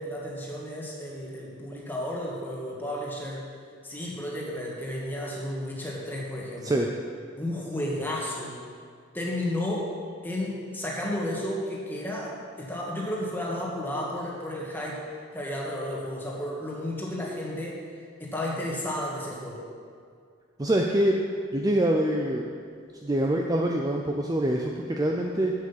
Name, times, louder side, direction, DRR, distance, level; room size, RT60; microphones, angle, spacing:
voice 1, 0.0-3.5 3.8-6.9 7.4-8.6 9.1-9.9 10.2-15.0 15.3-17.8 18.2-19.6, left 1 dB, 10° left, -3 dB, 1.6 m, -32 dB
voice 2, 20.6-21.2 21.5-22.5 23.0-25.5, right 1 dB, 20° right, 1 dB, 0.5 m, -25 dB
7.6 x 7.6 x 7.3 m, 2.2 s
head